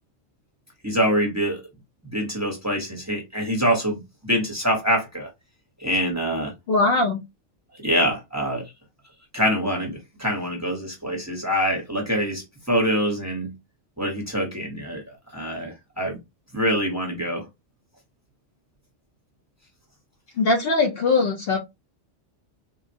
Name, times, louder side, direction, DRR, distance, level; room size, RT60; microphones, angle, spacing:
voice 1, 0.8-1.6 2.1-5.3 5.8-6.5 7.8-8.6 9.3-13.5 14.0-16.2 16.5-17.5, equal, 15° right, 0.8 m, -25 dB
voice 2, 6.7-7.2 20.4-21.6, left 3 dB, 60° left, 0.7 m, -20 dB
3.7 x 2.1 x 2.6 m
omnidirectional pair, 1.3 m